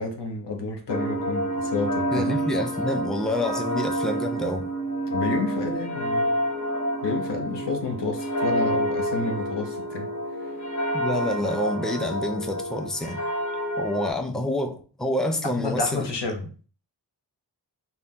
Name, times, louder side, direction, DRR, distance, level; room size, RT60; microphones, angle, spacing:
voice 1, 0.0-2.4 5.1-6.3 7.0-10.1 15.6-16.4, left 3 dB, 85° left, 3 dB, 0.9 m, -30 dB
sound 1, 0.9-14.1, equal, 45° left, 0.8 m, -28 dB
voice 2, 2.1-4.7 10.9-13.2 13.8-16.1, left 1 dB, ahead, 4 dB, 0.5 m, -28 dB
4.1 x 2.3 x 3.5 m, 0.39 s
wide cardioid pair, 55°, 41 cm